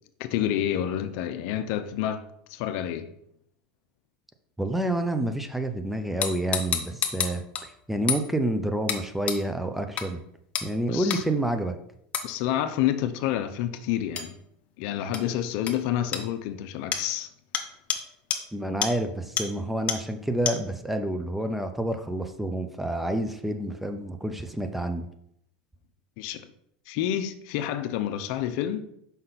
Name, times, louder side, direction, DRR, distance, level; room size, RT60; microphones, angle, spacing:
voice 1, 0.2-2.2 2.5-3.1 10.9-11.2 12.2-14.3 14.8-17.3 26.2-26.5 26.9-28.8, left 11 dB, 60° left, 0.6 m, -28 dB
voice 2, 4.6-10.2 10.6-11.7 18.5-25.1, right 1 dB, 5° right, 0.6 m, -28 dB
sound 1, 6.2-7.7 8.1-8.3 8.9-9.0 9.3-9.4 10.0-10.1 10.6-10.7 11.1-11.2 12.1-12.3 14.2-14.3 15.1-15.2 15.7-15.8 16.1-16.2 16.9-17.1 17.5-17.6 17.9-18.0 18.3-18.4 18.8-18.9 19.4-19.5 19.9-20.0 20.5-20.6, left 7 dB, 30° left, 0.9 m, -28 dB
5.9 x 5.3 x 4.0 m
supercardioid pair, 125°, 4 cm